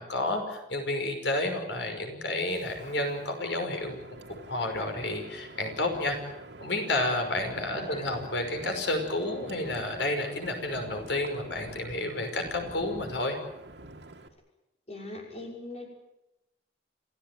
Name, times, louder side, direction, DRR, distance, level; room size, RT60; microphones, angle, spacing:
voice 1, 0.0-4.0 4.5-6.2 6.6-13.4, left 2 dB, 90° left, 4 dB, 5.7 m, -30 dB
Wind, 2.5-14.3, right 2 dB, 85° right, 2.9 m, -46 dB
voice 2, 7.6-8.1 14.9-15.9, left 2 dB, 35° left, 1 dB, 6.2 m, -41 dB
28.0 x 16.5 x 9.5 m, 0.90 s
head